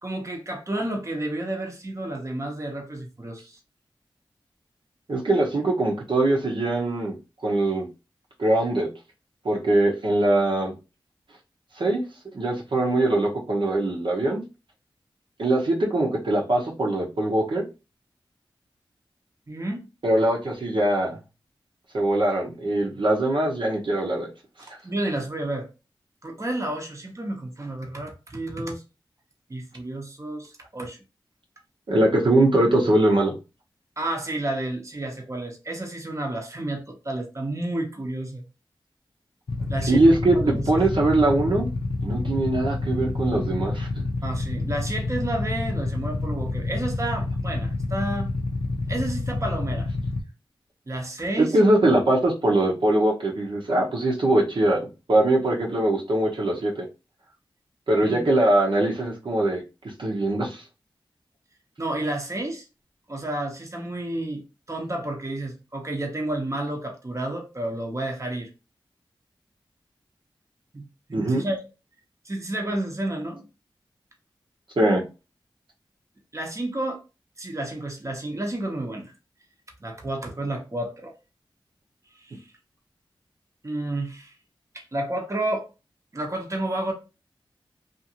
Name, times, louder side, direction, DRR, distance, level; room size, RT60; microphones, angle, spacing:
voice 1, 0.0-3.6 19.5-19.8 24.6-25.7 26.2-28.8 29.5-31.0 34.0-38.4 39.7-40.0 40.3-40.6 44.2-48.3 48.9-49.9 50.9-51.6 58.0-58.3 61.8-62.7 63.1-64.4 64.7-68.5 70.7-70.8 71.1-71.6 72.2-73.4 76.3-77.0 77.4-79.1 79.8-81.1 82.2-82.5 83.6-84.3 84.7-85.7 86.1-86.9, right 1 dB, 35° right, 0.8 m, -30 dB
voice 2, 5.1-7.1 7.4-7.9 8.4-8.9 9.4-10.7 11.8-12.0 12.3-14.4 15.4-17.7 20.0-21.2 21.9-24.3 31.9-33.3 39.9-41.7 42.0-43.9 51.4-56.9 57.9-59.6 60.0-60.6 71.1-71.4 74.8-75.0, right 1 dB, 65° right, 0.8 m, -22 dB
Motorcycle / Idling, 39.5-50.2, left 2 dB, 75° left, 0.6 m, -28 dB
2.5 x 2.5 x 2.8 m
cardioid pair, 40°, 9 cm